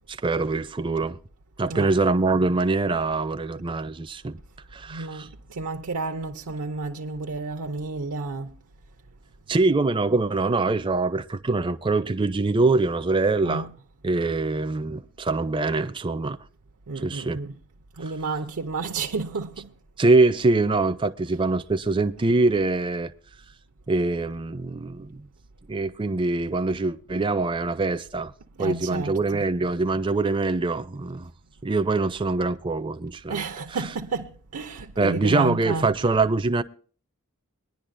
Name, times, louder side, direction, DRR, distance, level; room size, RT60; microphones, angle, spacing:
voice 1, 0.2-1.2 1.6-4.4 4.7-5.3 9.5-13.7 14.0-16.4 17.0-17.4 18.0-18.1 20.0-23.1 23.9-25.2 25.7-28.3 28.6-31.3 31.6-33.9 35.0-36.6, right 3 dB, 20° right, 0.4 m, -24 dB
voice 2, 4.9-5.2 5.6-8.5 13.4-13.7 16.9-17.5 18.0-19.7 28.6-29.1 33.3-35.9, right 3 dB, 85° right, 0.7 m, -31 dB
22.0 x 10.5 x 2.5 m
head